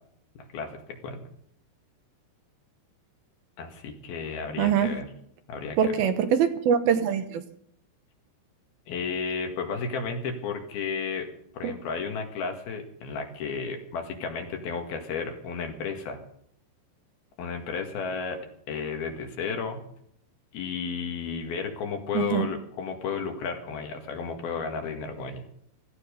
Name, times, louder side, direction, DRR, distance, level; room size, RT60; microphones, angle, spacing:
voice 1, 0.4-1.2 3.6-5.1 5.5-6.0 8.9-11.3 11.6-16.2 17.4-18.4 18.7-19.8 20.5-25.4, left 5 dB, 65° left, 4 dB, 3.7 m, -33 dB
voice 2, 4.6-5.0 5.8-7.4 11.6-11.7 22.1-22.5, right 8 dB, 75° right, 8 dB, 2.7 m, -23 dB
17.5 x 14.5 x 5.3 m, 0.70 s
omnidirectional pair, 4.8 m